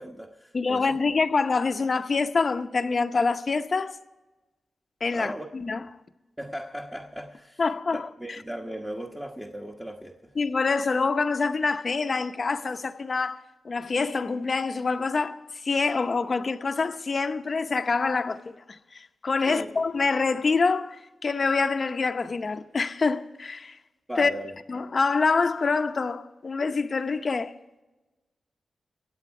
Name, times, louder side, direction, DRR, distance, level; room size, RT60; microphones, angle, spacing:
voice 1, 0.0-1.0 5.1-5.5 6.4-7.6 7.9-10.3 19.5-19.7 24.1-24.5, equal, 10° right, 1.2 m, -37 dB
voice 2, 0.5-4.0 5.0-5.9 7.6-8.1 10.4-13.4 13.6-23.8 24.2-24.3 24.7-27.5, left 4 dB, 45° left, 0.8 m, -26 dB
25.0 x 8.7 x 4.8 m
wide cardioid pair, 95°, 0 cm